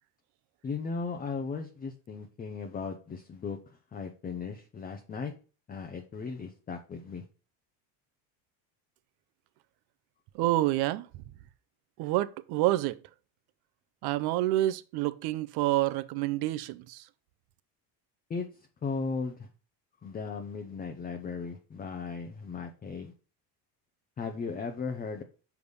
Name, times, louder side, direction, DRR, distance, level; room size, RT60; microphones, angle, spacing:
voice 1, 0.6-3.6 3.9-5.3 5.7-7.2 18.3-18.5 18.8-19.5 20.0-23.1 24.2-25.2, left 5 dB, 20° left, 0.6 m, -36 dB
voice 2, 10.3-11.2 12.0-13.0 14.0-17.0, right 15 dB, 55° right, 0.6 m, -28 dB
6.4 x 3.5 x 5.3 m
cardioid pair, 135°, 45 cm